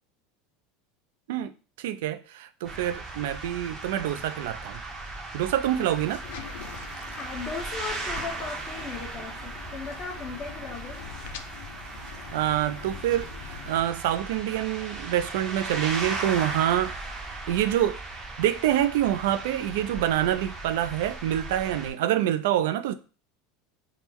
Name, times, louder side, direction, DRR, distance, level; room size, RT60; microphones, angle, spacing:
voice 1, 1.8-4.8 5.3-6.2 12.3-18.0 18.4-22.9, right 12 dB, 75° right, 0.3 m, -26 dB
sound 1, 2.6-21.9, right 3 dB, 20° right, 0.7 m, -37 dB
sound 2, 5.6-13.8, left 10 dB, 70° left, 0.3 m, -44 dB
voice 2, 7.1-11.0, left 5 dB, 25° left, 0.7 m, -37 dB
3.6 x 2.0 x 4.4 m
supercardioid pair, 175°, 0 cm